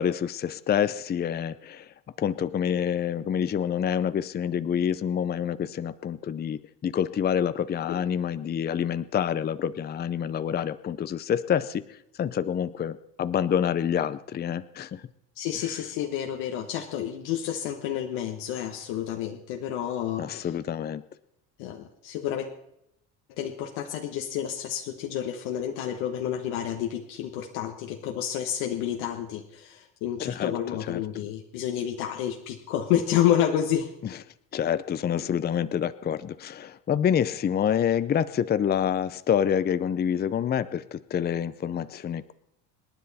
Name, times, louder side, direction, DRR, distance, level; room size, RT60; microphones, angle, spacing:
voice 1, 0.0-1.9 2.2-11.9 12.2-15.0 20.2-21.0 30.2-30.5 30.9-31.0 34.5-42.3, left 8 dB, 25° left, 14 dB, 0.6 m, -27 dB
voice 2, 15.4-20.5 21.6-22.5 23.4-33.9, left 10 dB, 85° left, 3 dB, 1.4 m, -29 dB
27.0 x 9.9 x 4.2 m, 0.83 s
cardioid pair, 120°, 38 cm